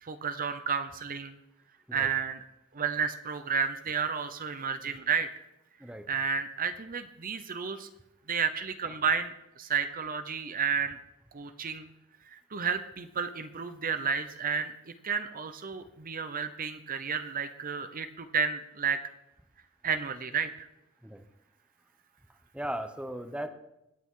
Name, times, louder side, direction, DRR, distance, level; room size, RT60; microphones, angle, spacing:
voice 1, 0.0-1.4 1.9-2.4 2.7-5.3 6.1-7.9 8.3-11.0 11.3-11.9 12.3-14.7 15.0-19.0 19.8-20.7, right 6 dB, 40° right, 10 dB, 0.8 m, -31 dB
voice 2, 22.5-23.5, right 1 dB, 5° right, 8 dB, 0.9 m, -37 dB
26.0 x 9.0 x 3.8 m, 0.90 s
head